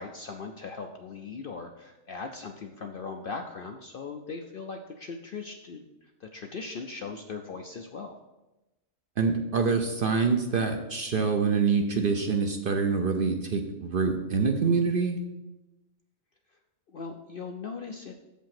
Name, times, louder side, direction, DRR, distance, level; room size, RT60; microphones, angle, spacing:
voice 1, 0.0-8.2 16.9-18.1, left 4 dB, 60° left, 4 dB, 0.6 m, -39 dB
voice 2, 9.2-15.2, right 5 dB, 50° right, 4 dB, 0.7 m, -25 dB
7.3 x 5.2 x 5.8 m, 1.0 s
omnidirectional pair, 1.4 m